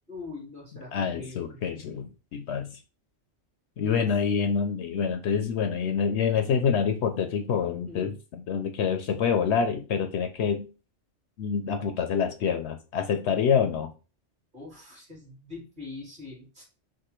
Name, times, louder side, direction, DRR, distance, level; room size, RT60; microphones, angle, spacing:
voice 1, 0.1-1.6 4.0-4.1 7.9-8.1 14.5-16.6, left 3 dB, 40° right, 3.0 m, -42 dB
voice 2, 0.9-2.7 3.8-10.7 11.4-13.9, left 6 dB, 70° left, 0.8 m, -26 dB
6.2 x 2.5 x 3.0 m
omnidirectional pair, 1.3 m